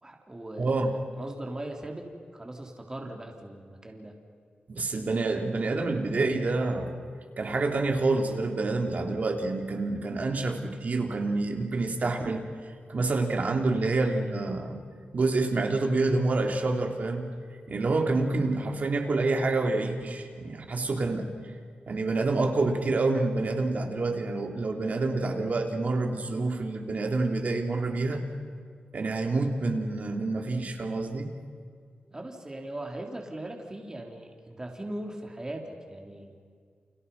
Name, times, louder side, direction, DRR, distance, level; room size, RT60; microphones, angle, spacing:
voice 1, 0.0-2.1 2.3-4.2 32.1-36.3, right 1 dB, 20° right, 2 dB, 3.7 m, -39 dB
voice 2, 0.6-0.9 4.7-7.0 7.4-12.4 12.9-14.8 15.1-17.3 17.7-21.3 21.9-28.2 28.9-31.3, right 3 dB, 50° right, 3 dB, 3.3 m, -27 dB
30.0 x 29.5 x 5.6 m, 2.1 s
wide cardioid pair, 110°, 3 cm